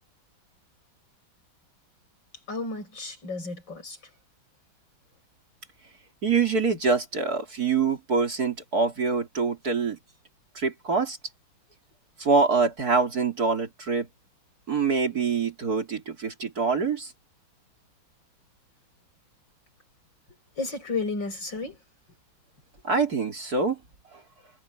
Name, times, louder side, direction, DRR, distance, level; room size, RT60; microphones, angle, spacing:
voice 1, 2.5-4.0 20.6-21.8, left 3 dB, 65° left, 8.5 m, -32 dB
voice 2, 6.2-10.0 10.6-11.2 12.2-14.1 14.7-17.1 22.8-23.8 24.1-24.2, right 4 dB, 50° right, 3.6 m, -25 dB
omnidirectional pair, 2.1 m